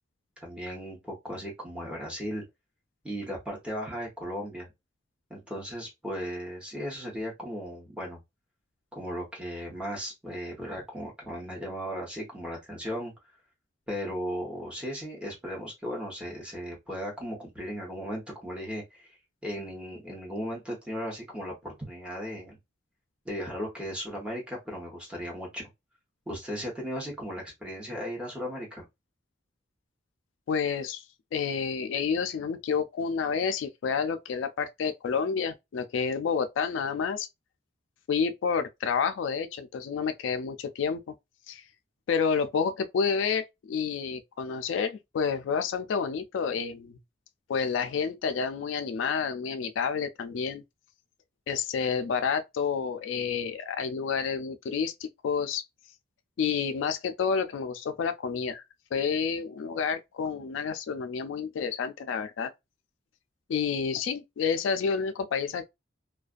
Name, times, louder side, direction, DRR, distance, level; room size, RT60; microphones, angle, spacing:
voice 1, 0.4-2.5 3.0-4.7 5.3-8.2 8.9-13.1 13.9-19.2 19.4-22.6 23.2-25.7 26.3-28.8, equal, 5° right, 0.9 m, -36 dB
voice 2, 30.5-31.0 31.3-37.3 38.1-41.1 41.5-41.6 42.1-47.0 47.5-50.6 51.5-55.6 56.4-58.6 58.9-62.5 63.5-65.7, left 6 dB, 75° left, 0.3 m, -29 dB
2.4 x 2.2 x 2.4 m
head